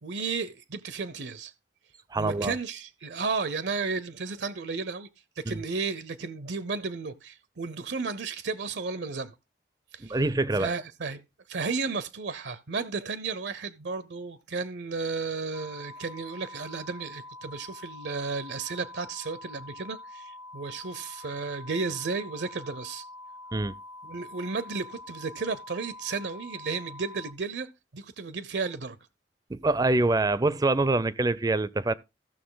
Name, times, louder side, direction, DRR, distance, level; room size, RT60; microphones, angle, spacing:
voice 1, 0.0-1.5 2.2-5.1 5.4-9.3 9.9-10.2 10.6-11.2 11.5-23.1 24.0-27.7 27.9-29.0, right 4 dB, 75° right, 0.7 m, -33 dB
voice 2, 2.1-2.5 5.5-5.6 10.0-10.7 23.5-23.7 29.5-31.9, right 2 dB, 20° right, 0.4 m, -25 dB
sound 1, 15.5-27.3, left 2 dB, 80° left, 1.1 m, -45 dB
14.5 x 6.5 x 3.8 m
head